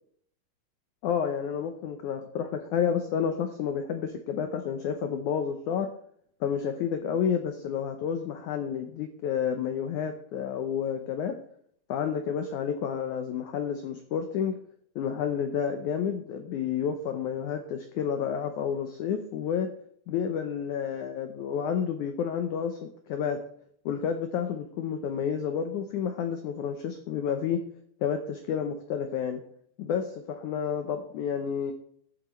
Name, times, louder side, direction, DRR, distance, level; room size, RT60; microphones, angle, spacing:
voice 1, 1.0-5.9 6.4-11.3 11.9-14.6 15.0-19.7 20.1-23.4 23.9-27.6 28.0-29.4 29.8-31.7, left 7 dB, 85° left, 6 dB, 1.7 m, -30 dB
15.0 x 8.7 x 3.1 m, 0.64 s
omnidirectional pair, 4.6 m